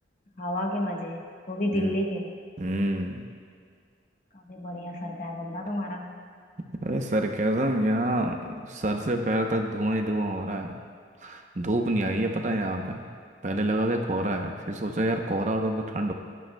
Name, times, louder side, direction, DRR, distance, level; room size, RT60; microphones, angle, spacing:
voice 1, 0.4-1.2 1.5-2.3 4.3-6.2, left 1 dB, 40° left, 0 dB, 1.3 m, -30 dB
voice 2, 2.6-3.2 6.8-10.8 11.2-13.1 13.4-16.1, right 1 dB, 40° right, 3 dB, 0.7 m, -27 dB
18.5 x 11.5 x 2.3 m, 2.1 s
head